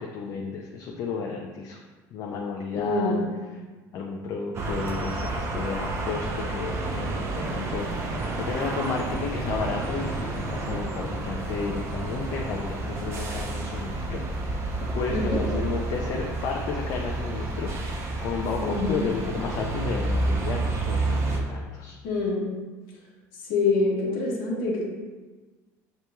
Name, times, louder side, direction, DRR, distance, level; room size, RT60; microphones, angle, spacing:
voice 1, 0.0-1.8 2.1-3.1 3.9-14.2 14.5-22.0, left 5 dB, 55° left, 0 dB, 0.5 m, -33 dB
voice 2, 2.7-3.3 15.1-15.4 18.6-19.0 22.0-22.5 23.4-24.9, left 3 dB, 80° left, -6 dB, 1.2 m, -25 dB
sound 1, 4.5-21.4, right 2 dB, 40° right, 0.6 m, -30 dB
6.6 x 2.9 x 2.3 m, 1.3 s
cardioid pair, 130°, 7 cm